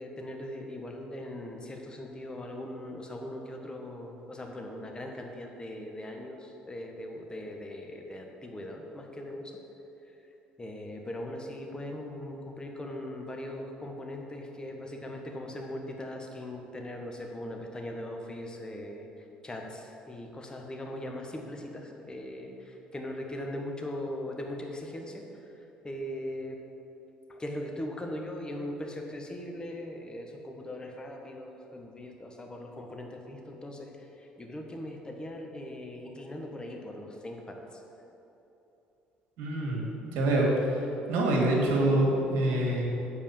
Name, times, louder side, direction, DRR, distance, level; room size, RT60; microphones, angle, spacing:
voice 1, 0.0-9.5 10.6-25.4 25.8-26.6 27.3-37.8, left 1 dB, 20° left, 2 dB, 1.4 m, -40 dB
voice 2, 39.4-40.5 41.1-42.8, right 1 dB, 70° right, -2 dB, 1.9 m, -26 dB
7.6 x 4.7 x 7.1 m, 3.0 s
hypercardioid pair, 65°, 4 cm